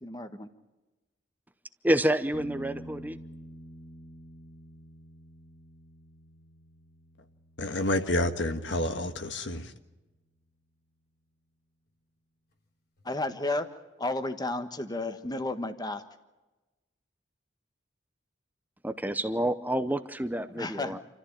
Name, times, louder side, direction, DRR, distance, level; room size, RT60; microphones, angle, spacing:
voice 1, 0.0-0.5 13.0-13.7 14.0-16.0 20.5-21.0, left 2 dB, 20° left, 1.4 m, -32 dB
voice 2, 1.8-3.2 18.8-21.0, right 1 dB, 10° right, 0.7 m, -28 dB
sound 1, 2.3-9.9 13.0-13.1, equal, 55° left, 3.2 m, -49 dB
voice 3, 7.6-9.7, left 1 dB, 75° left, 1.6 m, -29 dB
28.0 x 14.0 x 8.7 m
head